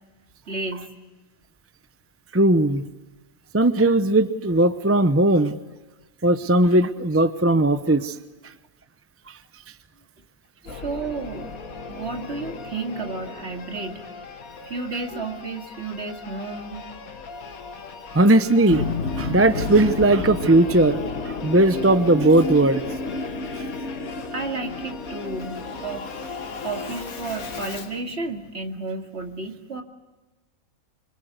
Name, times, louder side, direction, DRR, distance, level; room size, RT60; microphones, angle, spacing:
voice 1, 0.5-0.9 10.6-11.5 11.9-14.1 14.6-16.9 24.3-26.2 26.6-29.8, right 3 dB, 50° right, 3 dB, 2.5 m, -32 dB
voice 2, 2.3-2.9 3.5-5.6 6.2-8.2 10.7-10.8 18.1-18.8 19.2-21.0 21.2-22.8, right 2 dB, 15° right, 11 dB, 0.6 m, -18 dB
Singing / Musical instrument, 10.7-28.0, left 4 dB, 85° left, 1.9 m, -37 dB
sound 1, 18.7-27.6, left 3 dB, 55° left, 1.7 m, -32 dB
26.0 x 25.0 x 8.1 m, 1.2 s
omnidirectional pair, 1.5 m